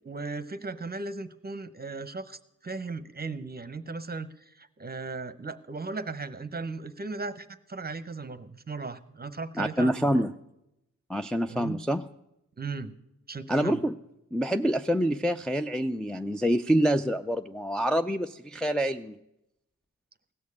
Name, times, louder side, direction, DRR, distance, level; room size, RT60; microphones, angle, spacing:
voice 1, 0.0-10.3 11.5-11.8 12.6-12.9 13.3-13.9, right 3 dB, 30° right, 14 dB, 0.8 m, -37 dB
voice 2, 9.6-10.3 11.1-12.0 13.5-14.0 14.3-19.2, equal, ahead, 5 dB, 0.4 m, -26 dB
16.5 x 6.5 x 8.5 m, 0.86 s
cardioid pair, 50°, 34 cm